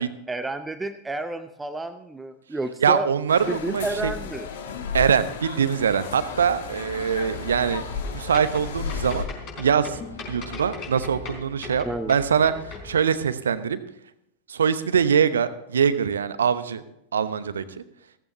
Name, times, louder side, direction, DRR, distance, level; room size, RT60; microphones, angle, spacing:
voice 1, 0.0-3.1 3.4-4.5 11.8-12.2, right 2 dB, 10° right, 9 dB, 0.7 m, -31 dB
voice 2, 2.8-4.1 4.9-7.8 8.1-9.3 9.6-10.0 10.3-13.8 14.5-16.8 17.1-17.8, right 7 dB, 65° right, 13 dB, 0.9 m, -23 dB
sound 1, 3.3-9.2, left 7 dB, 60° left, 1.6 m, -34 dB
sound 2, 6.0-12.9, left 4 dB, 35° left, 4.2 m, -40 dB
Boat Water vehicle, 6.2-11.4, left 1 dB, 80° left, 2.0 m, -47 dB
16.0 x 14.5 x 3.1 m, 0.79 s
figure-of-eight pair, 90°, 0 cm